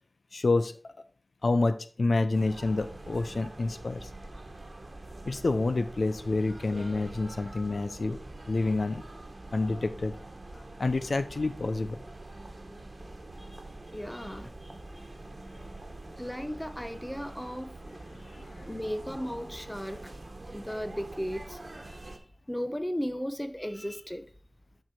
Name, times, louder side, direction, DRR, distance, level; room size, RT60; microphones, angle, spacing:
voice 1, 0.3-0.7 1.4-4.1 5.3-8.2 8.5-9.0 9.5-10.2 10.5-12.0 18.3-18.8, left 3 dB, 90° left, 0.6 m, -28 dB
sound 1, 2.3-22.2, right 2 dB, 55° right, 1.6 m, -45 dB
voice 2, 13.9-14.5 16.2-17.7 18.7-20.1 20.5-22.1 22.5-24.2, equal, 10° left, 0.9 m, -36 dB
10.5 x 4.7 x 4.5 m
wide cardioid pair, 60°, 0 cm